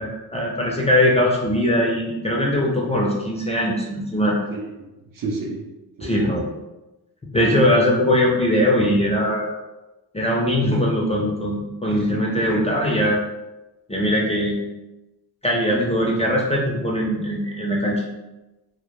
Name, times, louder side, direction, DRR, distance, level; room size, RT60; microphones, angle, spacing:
voice 1, 0.0-4.4 6.0-6.5 7.3-9.5 10.1-13.2 13.9-14.6 15.4-18.0, equal, 15° left, -3 dB, 0.4 m, -21 dB
voice 2, 4.5-5.7 6.0-6.4 11.9-12.6, right 3 dB, 55° right, 0 dB, 0.6 m, -32 dB
2.1 x 2.1 x 3.0 m, 1.0 s
cardioid pair, 75°, 42 cm